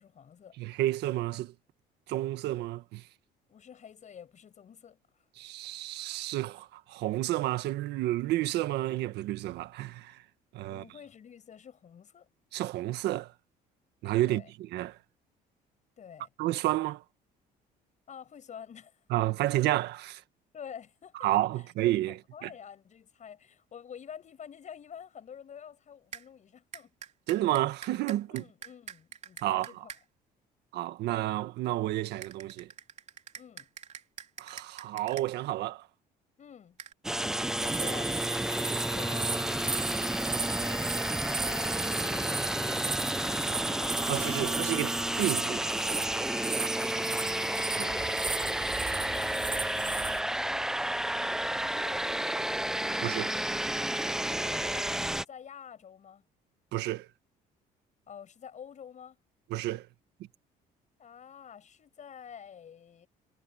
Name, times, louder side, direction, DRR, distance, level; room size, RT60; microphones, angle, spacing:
voice 1, 0.0-0.6 3.5-5.2 10.7-12.3 14.2-14.5 16.0-16.3 18.1-19.1 19.4-19.5 20.5-21.3 22.1-26.9 28.3-29.9 33.3-33.7 36.4-36.8 37.4-39.4 40.0-44.1 46.5-48.2 49.0-50.7 50.9-52.5 54.3-56.2 58.1-59.2 61.0-63.1, left 8 dB, 45° left, 7.7 m, -49 dB
voice 2, 0.6-1.5 2.1-3.0 5.4-10.2 10.5-10.8 12.5-13.3 14.0-14.4 14.7-15.0 16.4-17.0 19.1-20.2 21.2-22.5 27.3-28.4 29.4-29.7 30.7-32.7 34.4-35.8 44.1-45.6 47.8-47.9 53.0-53.3 56.7-57.1 59.5-59.9, right 15 dB, 80° right, 1.7 m, -30 dB
sound 1, 26.1-26.2 26.7-30.0 32.2-35.3 36.8-36.9, right 7 dB, 45° right, 3.0 m, -45 dB
sound 2, 37.0-55.2, right 1 dB, 5° right, 0.4 m, -31 dB
sound 3, 37.6-50.2, right 5 dB, 25° right, 7.7 m, -36 dB
cardioid pair, 110°, 17 cm